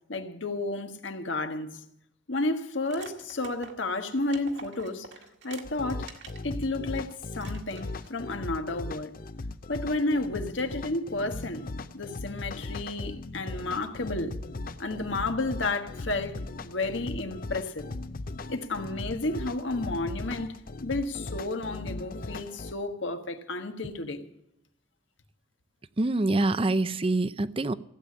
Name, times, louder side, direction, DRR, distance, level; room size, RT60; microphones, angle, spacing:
voice 1, 0.1-1.8 2.3-5.1 5.4-6.1 6.4-9.1 9.7-11.7 11.9-14.4 14.8-17.9 18.5-24.2, left 2 dB, 75° left, 1.4 m, -32 dB
sound 1, 2.8-6.5 6.9-7.0 7.4-8.1, right 4 dB, 65° right, 1.8 m, -47 dB
sound 2, 5.6-22.7, left 2 dB, 45° left, 0.6 m, -38 dB
voice 2, 26.0-27.7, right 2 dB, 30° right, 0.5 m, -25 dB
16.0 x 8.6 x 8.4 m
head